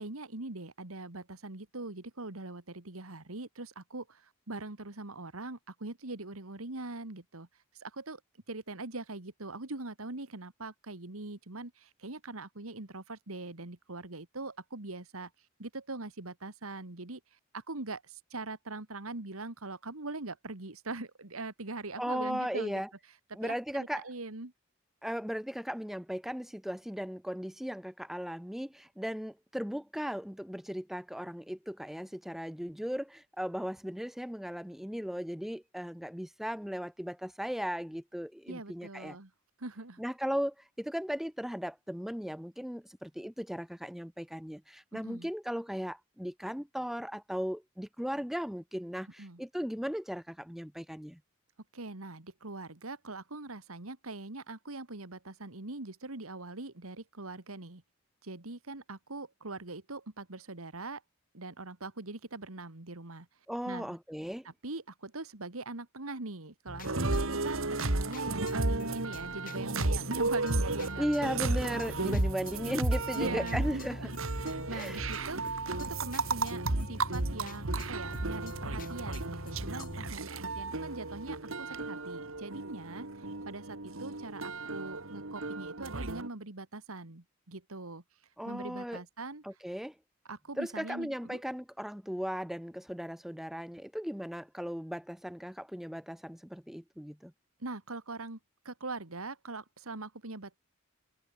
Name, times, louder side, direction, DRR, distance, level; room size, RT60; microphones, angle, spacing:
voice 1, 0.0-7.5 7.8-8.2 8.5-15.3 15.6-17.2 17.5-22.8 23.4-24.5 38.5-39.3 39.6-40.0 44.9-45.3 49.2-49.4 51.7-57.8 58.2-61.0 61.3-63.3 63.7-64.0 64.4-71.1 71.4-72.0 73.1-88.0 88.5-89.4 90.3-91.4 97.6-98.4 98.6-100.6, right 2 dB, 90° right, 2.2 m, -42 dB
voice 2, 22.0-22.9 23.3-24.1 25.0-39.2 40.0-51.2 63.5-64.5 71.0-74.0 74.7-75.0 88.4-89.0 89.4-89.9 90.6-97.3, equal, ahead, 0.6 m, -37 dB
sound 1, 66.7-80.1, left 1 dB, 40° left, 3.5 m, -44 dB
sound 2, 66.8-86.3, right 2 dB, 75° right, 2.3 m, -34 dB
head